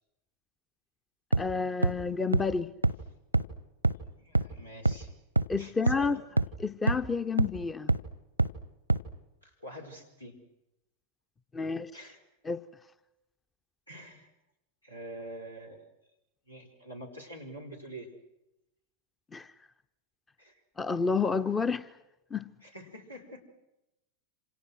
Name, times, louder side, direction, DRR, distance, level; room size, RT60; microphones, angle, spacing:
sound 1, 1.3-1.4 1.8-1.9 2.3-2.4 2.8-2.9 3.3-3.4 3.8-3.9 4.4-4.5 4.9-5.0 5.4-5.5 5.9-6.0 6.4-6.5 6.9-7.0 7.4-7.5 7.9-8.0 8.4-8.5 8.9-9.0, right 2 dB, 85° right, 1.0 m, -23 dB
voice 1, 1.4-2.7 5.5-6.2 6.6-7.9 11.5-11.9 12.4-12.6 19.3-19.5 20.8-21.9 22.3-22.5, left 5 dB, 15° left, 0.8 m, -30 dB
voice 2, 4.2-5.1 5.6-6.2 9.4-10.4 11.9-12.2 13.9-14.3 14.8-15.9 16.5-18.1 20.4-20.6 22.6-23.4, right 1 dB, 90° left, 5.0 m, -46 dB
28.0 x 27.0 x 6.3 m
figure-of-eight pair, 90°, 0 cm